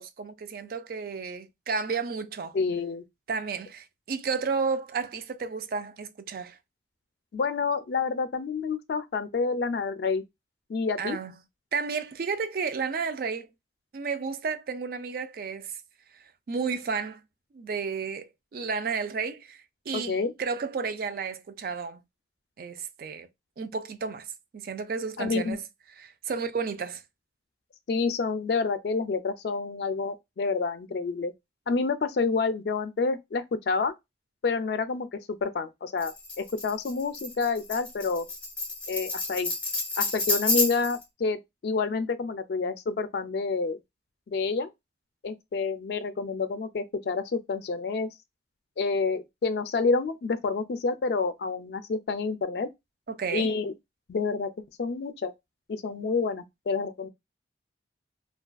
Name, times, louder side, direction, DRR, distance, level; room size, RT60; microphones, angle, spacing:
voice 1, 0.0-2.6 3.3-6.6 11.0-11.3 11.7-13.5 13.9-15.7 16.5-17.2 17.5-22.0 22.6-23.3 23.6-24.3 24.5-25.6 26.0-27.0 53.1-53.5, right 5 dB, 50° right, 0.4 m, -32 dB
voice 2, 2.5-3.0 7.3-10.2 10.7-11.2 19.9-20.3 25.2-25.6 27.9-31.3 31.7-33.9 34.4-38.3 38.9-39.5 40.0-43.8 44.3-44.7 45.2-48.1 48.8-52.7 53.3-53.7 54.1-54.5 54.8-55.3 55.7-57.1, left 4 dB, 60° left, 0.3 m, -28 dB
Tambourine, 36.0-41.0, left 2 dB, 5° left, 0.8 m, -30 dB
2.4 x 2.3 x 2.2 m
head